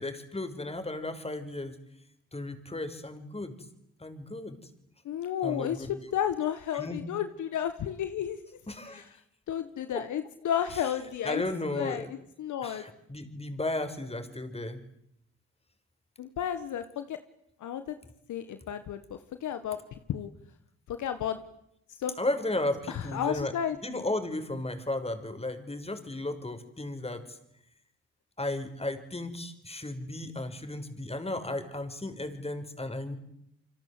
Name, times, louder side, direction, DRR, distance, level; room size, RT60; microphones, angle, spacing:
voice 1, 0.0-1.7 2.3-3.6 4.0-4.6 5.4-5.9 6.7-7.0 8.7-9.0 9.9-10.0 10.7-10.8 11.2-12.1 12.6-14.8 22.2-23.5 23.8-27.4 28.4-33.2, left 2 dB, 20° left, 8 dB, 5.7 m, -34 dB
voice 2, 5.0-8.4 8.9-9.0 9.5-11.4 11.7-12.0 12.4-12.8 16.2-17.2 17.6-17.9 18.3-19.8 20.1-20.3 20.9-21.4 22.0-22.1 22.9-24.0, left 9 dB, 65° left, 10 dB, 1.7 m, -32 dB
29.0 x 25.0 x 8.0 m, 0.78 s
hypercardioid pair, 50°, 32 cm